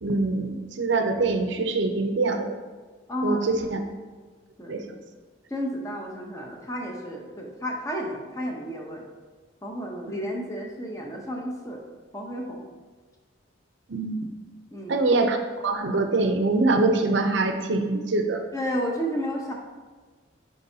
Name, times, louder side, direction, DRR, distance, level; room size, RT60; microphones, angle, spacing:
voice 1, 0.0-2.5 3.2-3.8 4.7-4.8 13.9-14.2 14.9-15.4 15.6-18.4, right 3 dB, 75° right, 5 dB, 0.6 m, -24 dB
voice 2, 3.1-3.6 4.6-4.8 5.5-9.0 9.6-11.8 12.1-12.7 14.7-15.0 18.5-19.5, equal, 15° left, 0 dB, 0.8 m, -32 dB
9.4 x 4.3 x 2.8 m, 1.4 s
head